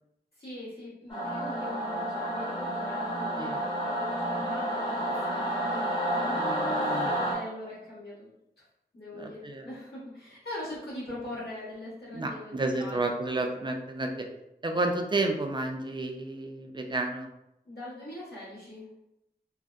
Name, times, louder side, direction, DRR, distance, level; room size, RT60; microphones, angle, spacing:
voice 1, 0.3-8.3 8.6-8.7 8.9-13.1 17.6-18.9, left 1 dB, 75° left, -11 dB, 1.2 m, -42 dB
Singing / Musical instrument, 1.1-7.4, right 1 dB, 25° left, 0.9 m, -30 dB
voice 2, 6.4-7.3 9.2-9.6 12.1-14.3 14.6-17.3, right 2 dB, 30° right, 3 dB, 0.4 m, -31 dB
2.6 x 2.0 x 2.3 m, 0.84 s
wide cardioid pair, 60°, 17 cm